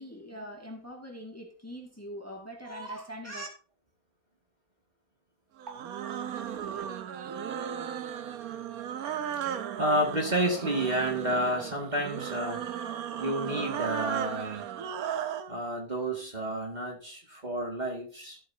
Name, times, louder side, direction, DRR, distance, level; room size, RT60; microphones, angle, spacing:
voice 1, 0.0-3.5, equal, 10° left, 2.0 m, -42 dB
sound 1, 5.6-15.5, right 9 dB, 80° right, 1.3 m, -35 dB
voice 2, 9.4-12.6 13.2-14.7 15.5-18.4, right 1 dB, 30° right, 2.2 m, -30 dB
14.5 x 8.5 x 2.8 m
omnidirectional pair, 1.5 m